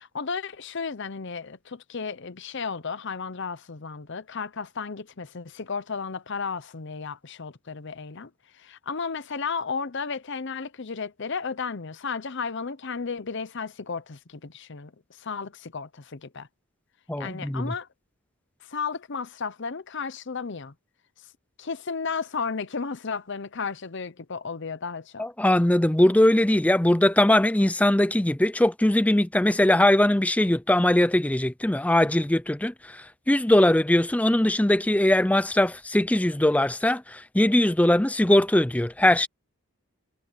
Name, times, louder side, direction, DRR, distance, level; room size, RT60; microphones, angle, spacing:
voice 1, 0.0-16.5 17.2-17.9 18.6-20.7 21.6-25.3, left 5 dB, 55° left, 0.8 m, -33 dB
voice 2, 17.1-17.7 25.2-39.3, left 1 dB, 5° left, 0.5 m, -21 dB
head